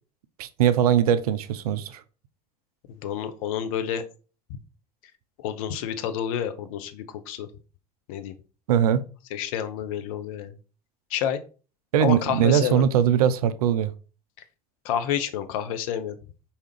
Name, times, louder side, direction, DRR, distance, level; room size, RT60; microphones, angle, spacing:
voice 1, 0.4-2.0 8.7-9.0 11.9-13.9, right 9 dB, 70° right, 0.4 m, -21 dB
voice 2, 3.0-4.0 5.4-7.5 8.1-8.3 9.3-10.5 11.1-11.4 12.0-12.8 14.8-16.2, left 9 dB, 60° left, 0.5 m, -29 dB
4.7 x 2.8 x 3.1 m
figure-of-eight pair, 65°, 20 cm